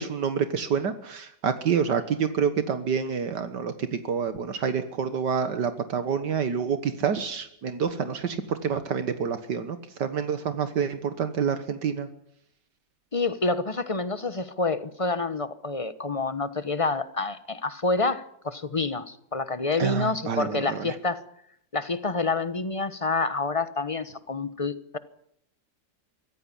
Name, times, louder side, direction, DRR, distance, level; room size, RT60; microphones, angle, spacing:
voice 1, 0.0-12.1 19.8-21.0, right 7 dB, 75° right, 2.0 m, -28 dB
voice 2, 13.1-21.2 21.7-25.0, left 3 dB, 25° left, 0.8 m, -28 dB
24.0 x 15.5 x 10.0 m
omnidirectional pair, 1.9 m